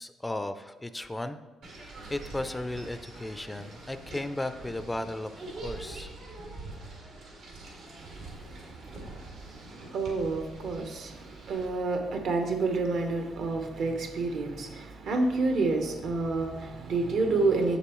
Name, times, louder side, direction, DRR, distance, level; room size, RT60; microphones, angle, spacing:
voice 1, 0.0-1.4 1.8-6.1, left 1 dB, 10° left, 0.3 m, -35 dB
sound 1, 1.6-11.7, right 2 dB, 85° right, 1.9 m, -44 dB
voice 2, 8.1-17.8, right 3 dB, 70° right, 0.9 m, -29 dB
7.0 x 6.8 x 3.0 m
cardioid pair, 90°, 0 cm